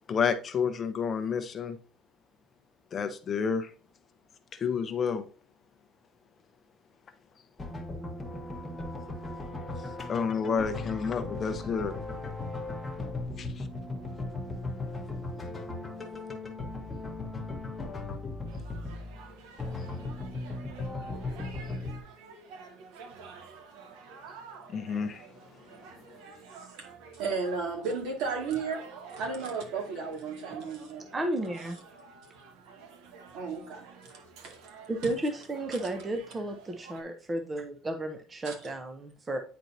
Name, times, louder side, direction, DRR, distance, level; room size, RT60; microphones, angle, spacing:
voice 1, 0.1-1.8 2.9-3.7 4.5-5.3 10.1-12.0 13.4-13.7 24.7-25.3, left 6 dB, 30° left, 0.6 m, -30 dB
sound 1, 7.6-22.0, left 2 dB, 10° left, 1.0 m, -37 dB
sound 2, 18.5-37.0, right 5 dB, 85° right, 1.1 m, -50 dB
voice 2, 27.1-28.8 29.2-31.0 33.3-34.2 34.4-34.5 38.5-38.6, right 4 dB, 70° right, 2.0 m, -34 dB
voice 3, 31.1-31.8 34.9-39.4, right 1 dB, 15° right, 0.6 m, -33 dB
9.2 x 4.4 x 2.6 m
cardioid pair, 165°, 0 cm